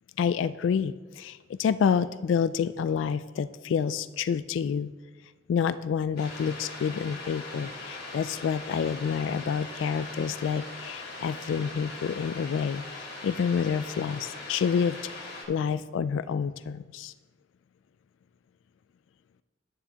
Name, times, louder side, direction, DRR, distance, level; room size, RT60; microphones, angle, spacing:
voice 1, 0.2-4.9 5.5-17.1, left 6 dB, 90° left, 14 dB, 0.3 m, -28 dB
sound 1, 6.2-15.4, left 2 dB, 60° left, 2.6 m, -41 dB
11.0 x 9.4 x 2.9 m, 1.3 s
head